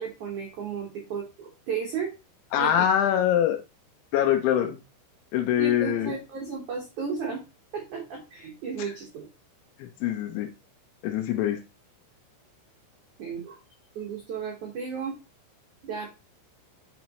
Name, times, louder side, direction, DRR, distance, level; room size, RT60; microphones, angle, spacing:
voice 1, 0.0-2.1 2.6-2.9 5.6-7.4 7.7-9.3 13.2-13.6 14.0-15.2 15.9-16.1, right 6 dB, 85° right, -1 dB, 1.7 m, -34 dB
voice 2, 2.5-3.6 4.1-4.8 5.3-6.1 9.8-10.5 11.0-11.6, left 10 dB, 80° left, 5 dB, 2.8 m, -24 dB
6.3 x 5.9 x 3.0 m, 0.27 s
omnidirectional pair, 5.8 m